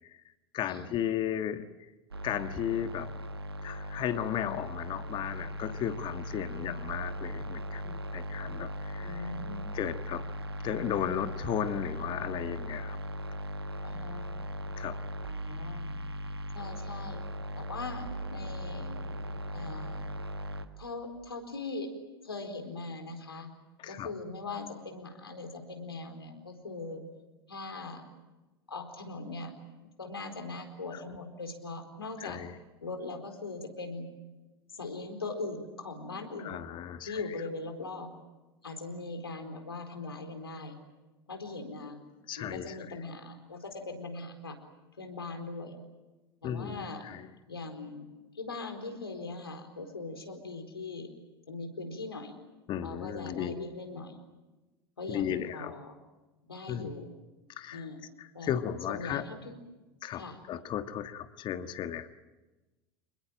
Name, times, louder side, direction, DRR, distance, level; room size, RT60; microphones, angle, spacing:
voice 1, 0.5-1.7 2.2-3.1 3.6-9.2 9.7-10.2 10.6-13.0 14.8-15.0 23.8-24.1 32.2-32.6 36.4-37.2 42.3-42.8 46.4-47.3 52.7-53.6 55.1-55.7 56.7-56.9 57.6-57.9 58.2-59.2 60.0-62.1, left 10 dB, 40° left, 10 dB, 1.6 m, -35 dB
sound 1, 2.1-20.7, equal, 85° right, 1.5 m, -38 dB
voice 2, 6.4-6.8 9.0-9.7 13.8-14.2 15.2-15.9 16.5-17.2 17.6-18.9 19.5-20.1 20.8-21.9 22.2-23.5 23.9-27.0 27.5-28.0 28.7-29.5 30.0-32.4 32.8-34.1 34.7-36.6 37.1-38.1 38.6-40.8 41.3-42.0 42.4-44.6 45.0-45.7 46.4-47.1 47.5-48.1 48.3-51.1 51.5-52.3 52.8-54.1 55.0-55.9 56.5-57.1 57.7-58.0 58.3-58.5 58.9-59.6 60.1-60.4, left 3 dB, 80° left, 5 dB, 4.4 m, -40 dB
28.5 x 21.0 x 9.1 m, 1.1 s
figure-of-eight pair, 80°, 13 cm